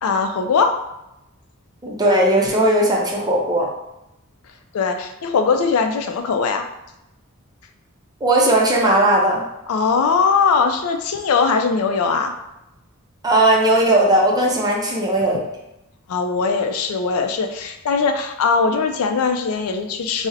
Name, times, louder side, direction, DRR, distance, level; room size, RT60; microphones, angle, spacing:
voice 1, 0.0-0.8 4.7-6.7 9.7-12.3 16.1-20.3, left 5 dB, 80° left, 5 dB, 0.4 m, -20 dB
voice 2, 1.8-3.7 8.2-9.5 13.2-15.4, right 1 dB, 20° right, -2 dB, 0.5 m, -17 dB
3.9 x 2.0 x 2.5 m, 0.89 s
head